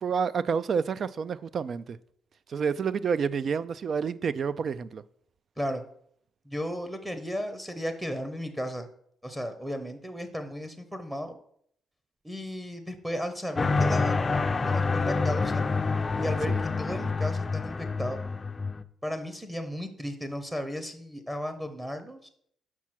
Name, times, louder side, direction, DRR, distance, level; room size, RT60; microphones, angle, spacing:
voice 1, 0.0-2.0 2.5-5.0 16.5-16.6, right 6 dB, 50° right, 16 dB, 0.3 m, -29 dB
voice 2, 6.5-8.9 9.2-11.4 12.2-14.1 14.6-15.6 16.2-16.5 16.8-18.2 19.0-22.3, equal, 5° right, 7 dB, 0.8 m, -34 dB
sound 1, 13.6-18.8, left 4 dB, 30° left, 0.4 m, -27 dB
6.1 x 4.7 x 5.9 m, 0.66 s
cardioid pair, 90°, 0 cm